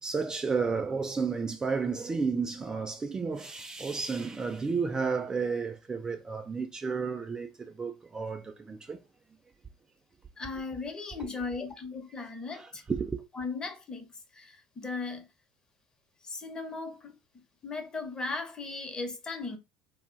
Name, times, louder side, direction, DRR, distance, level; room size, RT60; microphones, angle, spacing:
voice 1, 0.0-9.0 11.2-11.3 12.5-13.2, right 5 dB, 25° right, 0.5 m, -32 dB
voice 2, 10.4-12.8 13.3-14.1 14.3-15.3 16.2-19.6, left 3 dB, 25° left, 1.0 m, -37 dB
2.4 x 2.3 x 3.8 m
hypercardioid pair, 70°, 3 cm